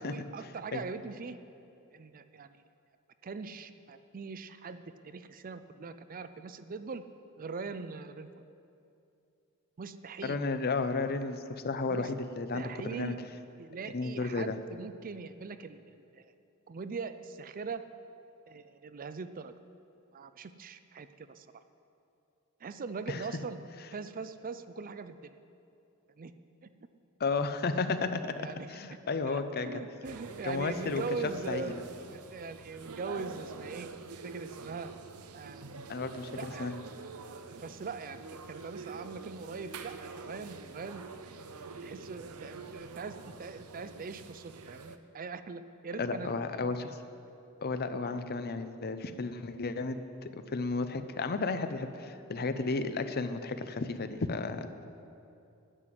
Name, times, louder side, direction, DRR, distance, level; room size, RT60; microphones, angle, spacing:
voice 1, 0.0-1.4 1.9-2.5 3.2-7.0 7.4-8.3 9.8-10.4 11.9-12.1 12.5-13.2 13.6-16.2 16.7-17.8 18.5-19.5 20.1-21.5 22.6-23.6 23.9-25.3 26.2-26.3 26.6-26.7 28.4-28.7 29.2-33.9 34.2-34.9 35.3-35.8 36.4-36.7 37.6-41.1 41.8-46.8, right 4 dB, 40° right, 11 dB, 0.5 m, -41 dB
voice 2, 10.2-13.1 13.9-14.6 23.1-23.2 27.2-29.7 30.4-31.0 31.5-31.7 35.9-36.7 46.0-46.9 47.6-54.8, left 3 dB, 45° left, 10 dB, 0.6 m, -33 dB
sound 1, 30.0-45.0, right 4 dB, 85° right, 0.7 m, -46 dB
9.8 x 9.5 x 7.6 m, 2.7 s
head